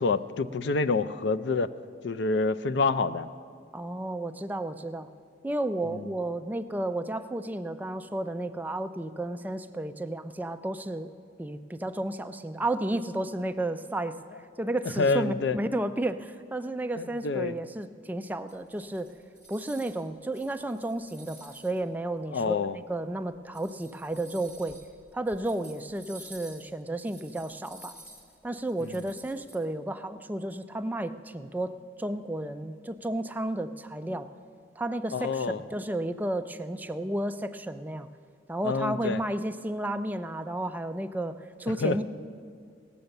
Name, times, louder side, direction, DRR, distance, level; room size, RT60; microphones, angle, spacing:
voice 1, 0.0-1.7 2.0-3.3 6.0-6.1 15.0-15.6 17.0-17.5 22.3-22.8 28.8-29.1 35.1-35.6 38.6-39.2 41.8-42.0, left 4 dB, 65° left, 13 dB, 0.4 m, -27 dB
voice 2, 3.7-5.1 5.4-11.1 11.4-14.2 14.6-19.1 19.5-22.6 22.9-24.8 25.1-28.0 28.4-34.3 34.8-38.1 38.5-42.0, right 1 dB, 10° right, 8 dB, 0.4 m, -32 dB
sound 1, 18.5-20.0 20.3-21.8 22.4-22.5 23.3-29.6, right 1 dB, 10° left, 1.7 m, -51 dB
17.5 x 7.0 x 6.6 m, 2.1 s
head